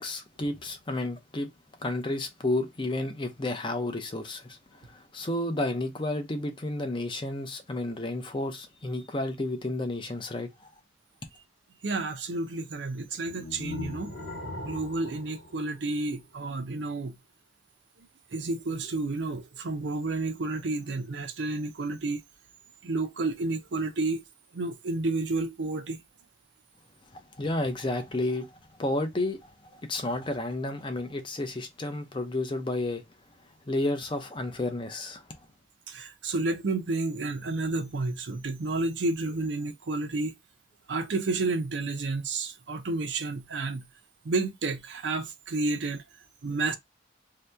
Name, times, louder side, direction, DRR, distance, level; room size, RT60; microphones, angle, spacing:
voice 1, 0.0-1.5 1.8-4.6 4.9-10.5 27.1-28.5 28.8-29.4 29.7-33.0 33.7-35.2, left 2 dB, 25° left, 0.6 m, -31 dB
voice 2, 11.8-14.1 14.6-17.2 18.0-22.2 22.8-24.2 24.5-26.0 35.9-40.3 40.9-43.9 44.2-46.0 46.4-46.8, right 3 dB, 70° right, 0.5 m, -31 dB
sound 1, 13.3-16.4, left 2 dB, 80° left, 1.1 m, -40 dB
2.8 x 2.2 x 3.3 m
head